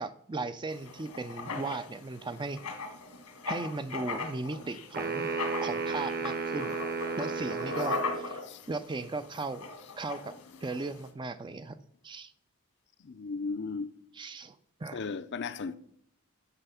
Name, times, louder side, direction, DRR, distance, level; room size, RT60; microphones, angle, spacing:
voice 1, 0.0-2.6 3.5-5.3 5.6-6.8 7.2-8.4 8.7-9.7 10.0-10.3 10.6-11.8 12.0-12.3 14.2-15.0, right 3 dB, 20° right, 0.4 m, -37 dB
Writing, 0.7-11.1, left 3 dB, 85° left, 1.6 m, -39 dB
sound 1, 4.9-8.3, right 4 dB, 40° right, 1.0 m, -33 dB
voice 2, 13.0-13.9 14.9-15.8, left 4 dB, 50° left, 0.5 m, -36 dB
11.5 x 6.8 x 5.7 m
head